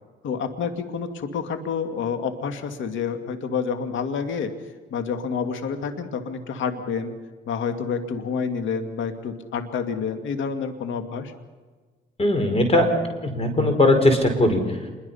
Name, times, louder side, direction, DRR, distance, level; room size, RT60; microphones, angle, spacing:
voice 1, 0.2-4.5 4.9-7.1 7.5-11.3, left 6 dB, 75° left, 7 dB, 2.2 m, -28 dB
voice 2, 12.2-12.9 13.2-14.6, left 1 dB, 30° left, 6 dB, 4.9 m, -19 dB
27.0 x 22.5 x 5.7 m, 1.4 s
cardioid pair, 90°, 20 cm